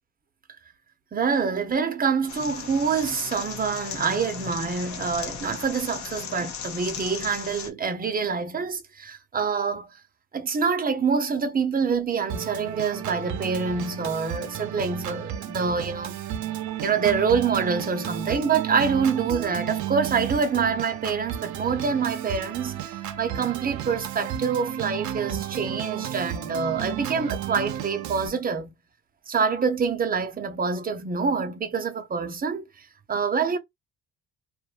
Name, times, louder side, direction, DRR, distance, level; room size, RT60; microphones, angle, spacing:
voice 1, 1.1-9.9 10.3-16.2 16.8-28.7 29.3-32.6 33.1-33.6, right 5 dB, 30° right, 0.7 m, -26 dB
sound 1, 2.3-7.7, left 7 dB, 70° left, 0.7 m, -37 dB
Organ, 12.3-28.3, right 11 dB, 75° right, 0.6 m, -33 dB
2.5 x 2.2 x 2.4 m
cardioid pair, 90°, 30 cm